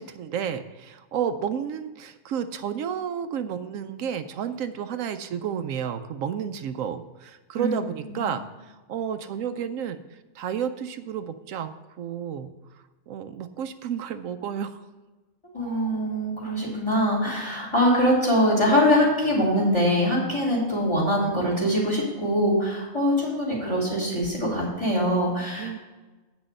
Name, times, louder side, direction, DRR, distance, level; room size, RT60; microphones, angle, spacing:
voice 1, 0.0-12.5 13.1-14.8 25.6-25.8, right 8 dB, 80° right, 10 dB, 1.0 m, -31 dB
voice 2, 15.5-25.8, equal, 20° left, -4 dB, 3.3 m, -23 dB
8.7 x 6.3 x 6.5 m, 1.2 s
omnidirectional pair, 1.4 m